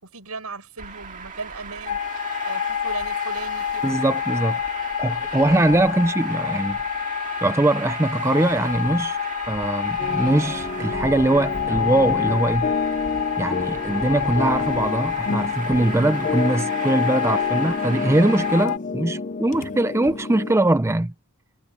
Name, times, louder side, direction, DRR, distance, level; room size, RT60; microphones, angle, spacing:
voice 1, 0.0-2.0 2.4-4.0, right 3 dB, 85° right, 7.6 m, -37 dB
Traffic noise roadway noise, 0.8-18.6, right 5 dB, 35° right, 2.0 m, -37 dB
sound 1, 1.9-18.8, left 9 dB, 70° left, 2.0 m, -28 dB
voice 2, 3.8-4.6 5.0-6.8 7.4-9.2 9.5-12.7 13.4-21.1, right 2 dB, 10° right, 0.5 m, -22 dB
sound 2, 10.0-20.5, left 4 dB, 35° left, 0.6 m, -30 dB
head